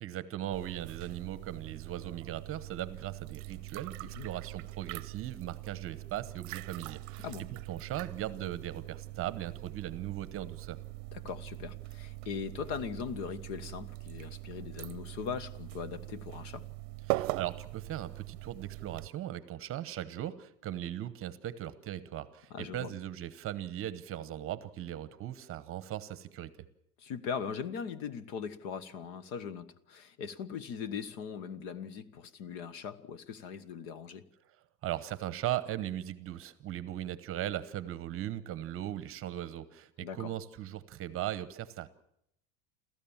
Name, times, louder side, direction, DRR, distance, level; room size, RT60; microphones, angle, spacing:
voice 1, 0.0-10.8 17.1-26.5 34.8-41.9, right 12 dB, 30° right, 0.9 m, -38 dB
sound 1, 0.5-19.1, right 21 dB, 55° right, 0.7 m, -42 dB
voice 2, 11.1-16.7 22.5-22.9 27.0-34.2 40.0-40.3, left 7 dB, 55° left, 1.4 m, -40 dB
29.0 x 14.0 x 7.3 m
supercardioid pair, 155°, 43 cm